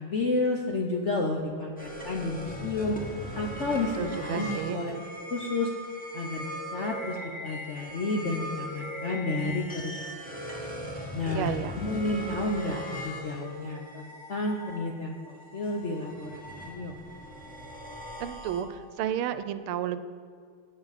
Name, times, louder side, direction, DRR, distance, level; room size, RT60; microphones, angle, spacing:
voice 1, 0.0-3.0 3.3-4.9 5.3-5.7 6.1-7.2 7.4-10.4 11.1-17.0, left 2 dB, 60° left, 0 dB, 0.7 m, -31 dB
sound 1, 1.8-19.0, equal, 5° left, 1.0 m, -39 dB
voice 2, 4.0-4.8 11.3-11.8 18.2-20.0, right 10 dB, 90° right, 11 dB, 1.5 m, -32 dB
17.5 x 6.3 x 4.1 m, 2.2 s
omnidirectional pair, 2.3 m